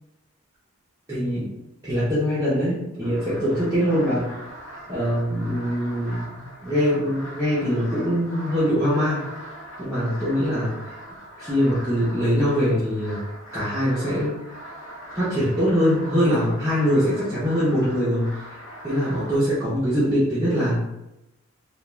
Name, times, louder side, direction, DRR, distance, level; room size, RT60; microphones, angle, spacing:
voice 1, 1.1-1.5 1.8-4.3 4.9-9.2 9.8-10.9 11.4-13.2 13.5-14.3 15.1-20.8, equal, 15° right, -11 dB, 0.6 m, -23 dB
sound 1, 3.0-19.4, equal, 70° left, 0.8 m, -41 dB
2.3 x 2.3 x 3.0 m, 0.92 s
head